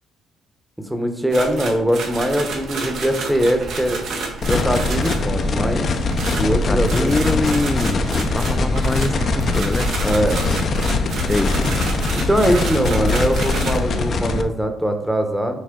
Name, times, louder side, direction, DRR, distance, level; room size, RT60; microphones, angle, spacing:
voice 1, 0.9-4.0 4.5-5.9 6.4-7.2 10.0-10.4 12.2-15.6, equal, 5° right, 6 dB, 1.0 m, -21 dB
sound 1, 1.3-5.3 6.1-13.8, right 3 dB, 75° right, 1.6 m, -30 dB
sound 2, 2.3-10.5, right 6 dB, 50° right, 0.4 m, -37 dB
sound 3, 4.4-14.4, left 3 dB, 55° left, 0.7 m, -22 dB
voice 2, 6.5-9.9 11.3-11.7, left 2 dB, 15° left, 15 dB, 0.3 m, -24 dB
6.5 x 5.4 x 3.8 m, 0.84 s
cardioid pair, 90°, 0 cm